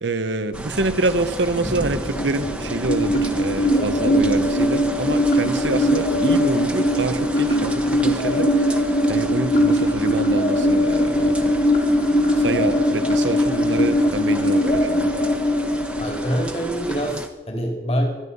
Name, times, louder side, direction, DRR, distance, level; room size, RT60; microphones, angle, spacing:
voice 1, 0.0-11.6 12.4-15.1, right 2 dB, 80° right, 11 dB, 1.1 m, -26 dB
sound 1, 0.5-17.3, right 1 dB, 5° right, 1.2 m, -33 dB
sound 2, 2.0-17.0, equal, 55° left, 3.8 m, -20 dB
voice 2, 16.0-18.1, equal, 35° left, 2 dB, 2.9 m, -25 dB
25.5 x 9.9 x 5.6 m, 1.3 s
head